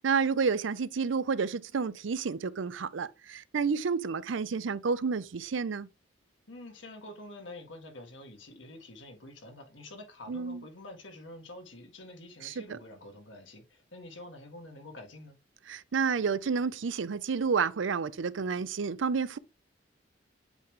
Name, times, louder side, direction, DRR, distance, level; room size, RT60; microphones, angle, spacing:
voice 1, 0.0-5.9 10.3-10.6 12.4-12.8 15.7-19.4, right 5 dB, 80° right, 0.5 m, -30 dB
voice 2, 6.5-15.4, left 1 dB, 75° left, 1.8 m, -47 dB
8.1 x 3.3 x 3.7 m
head